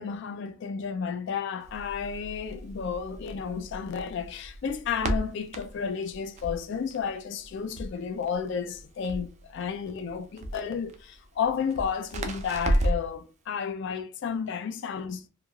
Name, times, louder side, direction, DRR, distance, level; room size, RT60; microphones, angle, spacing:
voice 1, 0.0-15.3, left 6 dB, 55° left, 0.3 m, -32 dB
Crackle, 1.6-13.2, right 1 dB, 35° right, 0.3 m, -34 dB
3.1 x 2.3 x 2.2 m
head